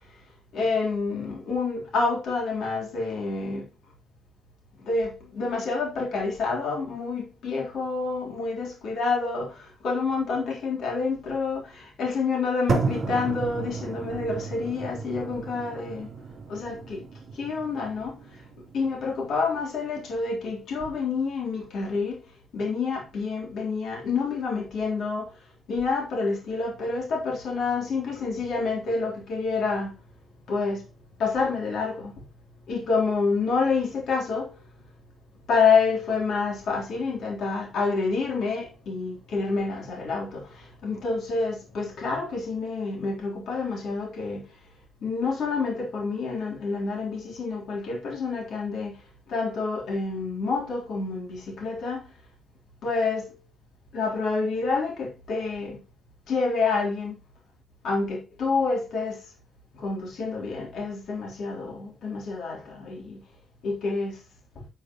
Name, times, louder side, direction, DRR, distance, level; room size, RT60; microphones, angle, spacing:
voice 1, 0.5-3.7 4.8-16.1 16.5-17.0 17.3-18.1 18.7-22.2 22.5-25.3 25.7-29.9 30.5-30.8 31.2-32.1 32.7-34.6 35.5-44.4 45.0-49.0 49.3-52.0 52.8-53.4 53.9-55.8 56.3-57.2 57.8-59.3 59.7-63.2 63.6-64.2, left 4 dB, 75° left, 3.6 m, -28 dB
sound 1, 12.7-20.7, right 4 dB, 55° right, 3.3 m, -33 dB
11.5 x 5.6 x 3.1 m
cardioid pair, 125°, 0 cm